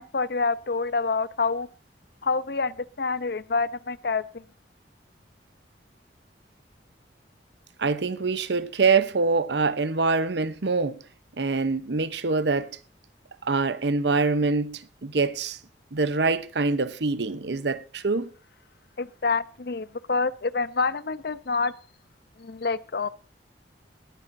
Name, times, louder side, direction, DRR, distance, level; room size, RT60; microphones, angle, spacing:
voice 1, 0.0-1.7 2.2-4.4 19.0-21.7 22.4-23.1, left 4 dB, 60° left, 0.7 m, -27 dB
voice 2, 7.8-11.0 11.4-12.7 13.4-15.6 15.9-18.3, right 4 dB, 70° right, 0.8 m, -25 dB
20.5 x 9.2 x 2.6 m
head